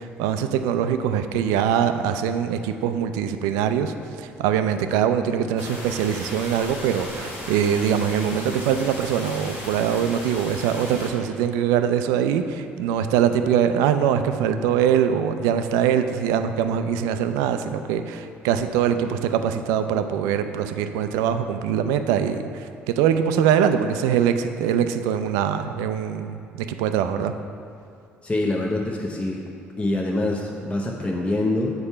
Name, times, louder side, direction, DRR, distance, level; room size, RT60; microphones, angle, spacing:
voice 1, 0.0-27.3, right 8 dB, 70° right, 9 dB, 0.4 m, -23 dB
sound 1, 5.6-11.1, left 1 dB, 80° left, 1.2 m, -36 dB
voice 2, 28.2-29.4 29.8-31.7, left 2 dB, 20° left, -1 dB, 0.7 m, -25 dB
6.7 x 4.4 x 5.6 m, 2.4 s
hypercardioid pair, 55°, 6 cm